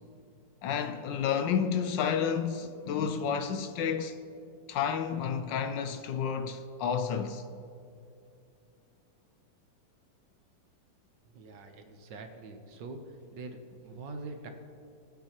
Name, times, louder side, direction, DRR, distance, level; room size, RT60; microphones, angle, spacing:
voice 1, 0.6-4.2 4.7-7.4, left 7 dB, 75° left, 1.2 m, -30 dB
voice 2, 11.3-13.0 13.3-14.5, right 3 dB, 65° right, 1.6 m, -44 dB
20.5 x 7.7 x 3.0 m
omnidirectional pair, 2.2 m